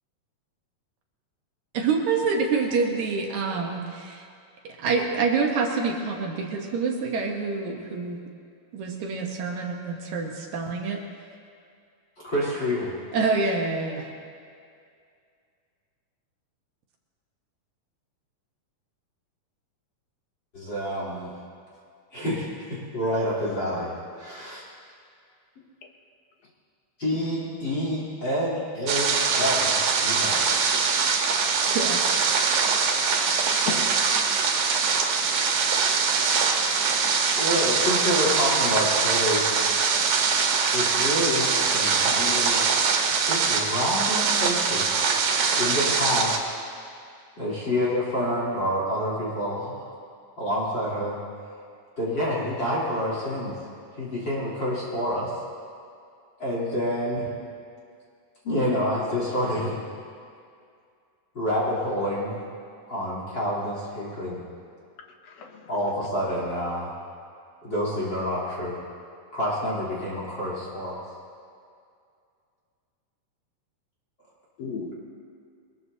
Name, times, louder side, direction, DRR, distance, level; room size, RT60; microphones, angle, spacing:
voice 1, 1.7-4.3 4.6-8.2 8.7-11.0 13.1-14.1 31.7-32.0, right 4 dB, 65° right, 1 dB, 2.3 m, -26 dB
voice 2, 12.2-12.9 20.5-21.3 22.1-24.6 27.0-30.4 37.4-39.5 40.7-42.6 43.2-45.0 45.5-46.4 47.4-49.9 50.4-51.2 52.0-53.5 54.0-55.3 56.4-57.3 58.4-59.7 61.3-62.3 62.9-64.4 65.7-67.0 67.6-68.8 69.3-71.0, equal, 35° left, -6 dB, 3.8 m, -28 dB
sound 1, 28.9-46.4, right 5 dB, 85° right, 3.1 m, -23 dB
voice 3, 33.7-34.1 65.2-65.7 74.6-75.0, left 5 dB, 60° left, 2 dB, 2.1 m, -34 dB
22.0 x 20.5 x 2.8 m, 2.3 s
omnidirectional pair, 4.0 m